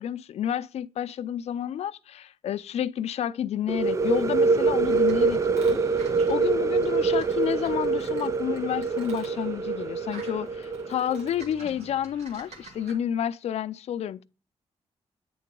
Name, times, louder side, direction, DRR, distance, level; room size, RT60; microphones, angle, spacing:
voice 1, 0.0-10.5 10.9-14.2, left 10 dB, 80° left, 0.4 m, -30 dB
sound 1, 3.7-11.3, right 4 dB, 30° right, 0.3 m, -25 dB
sound 2, 4.9-12.9, right 3 dB, 90° right, 2.2 m, -48 dB
9.2 x 3.8 x 5.2 m
cardioid pair, 110°, 11 cm